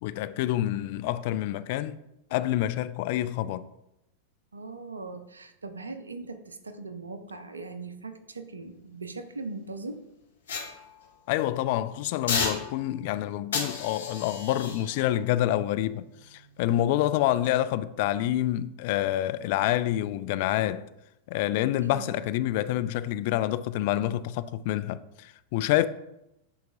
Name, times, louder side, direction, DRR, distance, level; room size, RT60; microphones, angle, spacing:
voice 1, 0.0-2.0 2.3-3.7 11.3-20.9 21.3-25.8, left 13 dB, 50° left, 0.3 m, -27 dB
voice 2, 4.5-10.1 21.9-22.2, right 3 dB, 75° right, 0.6 m, -40 dB
sound 1, 10.5-11.5 12.3-13.1 13.5-16.7 17.3-17.5, left 5 dB, 65° left, 1.4 m, -35 dB
10.5 x 4.0 x 2.6 m
figure-of-eight pair, 90°, 0 cm